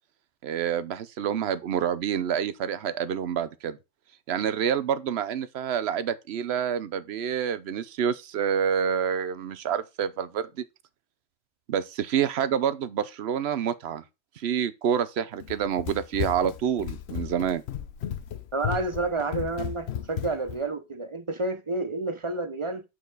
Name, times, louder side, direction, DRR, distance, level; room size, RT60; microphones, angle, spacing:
voice 1, 0.4-3.8 4.3-10.6 11.7-14.0 14.4-17.6, right 8 dB, 65° right, 0.9 m, -27 dB
Run, 15.4-20.6, left 10 dB, 70° left, 0.9 m, -34 dB
voice 2, 18.5-22.8, right 2 dB, 35° right, 0.6 m, -30 dB
8.2 x 4.7 x 3.9 m
omnidirectional pair, 1.2 m